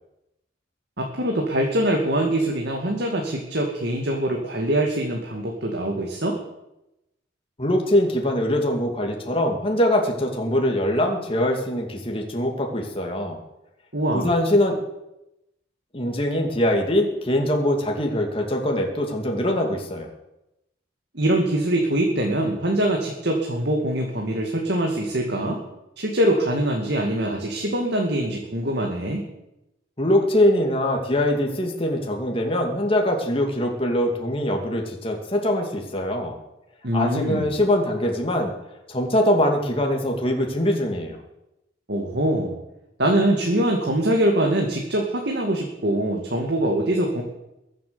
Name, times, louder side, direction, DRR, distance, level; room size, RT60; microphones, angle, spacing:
voice 1, 1.0-6.4 13.9-14.3 21.1-25.6 26.0-29.2 36.8-37.6 41.9-42.6 43.0-47.2, right 1 dB, 60° right, 1 dB, 2.2 m, -23 dB
voice 2, 7.6-13.4 14.1-14.8 15.9-20.1 30.0-36.4 36.9-38.5 38.9-41.2, left 1 dB, 30° left, 1 dB, 2.4 m, -23 dB
22.0 x 7.9 x 6.9 m, 0.91 s
head